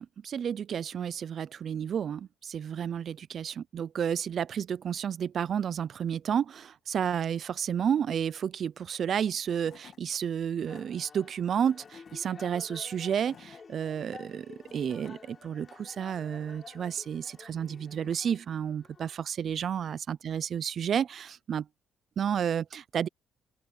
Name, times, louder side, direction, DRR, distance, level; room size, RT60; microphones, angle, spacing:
voice 1, 0.0-21.7 22.2-23.1, right 8 dB, 55° right, 0.5 m, -31 dB
Tools / Wood, 9.1-9.2 9.4-10.0 10.5-10.8 11.6-12.2 12.8-13.6 14.4-15.2, left 8 dB, 60° left, 1.6 m, -54 dB
sound 1, 10.6-19.2, left 5 dB, 40° left, 7.3 m, -51 dB
open air
cardioid pair, 90°, 0 cm